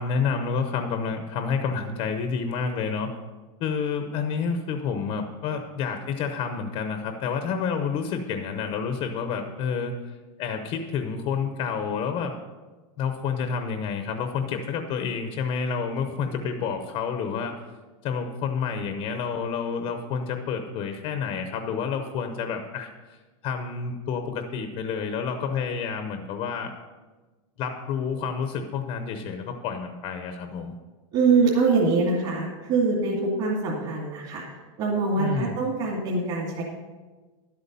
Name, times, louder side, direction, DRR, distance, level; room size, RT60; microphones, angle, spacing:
voice 1, 0.0-3.1 3.6-12.3 13.0-17.6 18.0-26.7 27.6-30.7 35.2-35.6, left 6 dB, 30° left, 6 dB, 0.7 m, -29 dB
voice 2, 31.1-34.4 34.8-36.6, right 4 dB, 35° right, -4 dB, 2.3 m, -24 dB
11.5 x 8.3 x 5.4 m, 1.3 s
supercardioid pair, 165°, 17 cm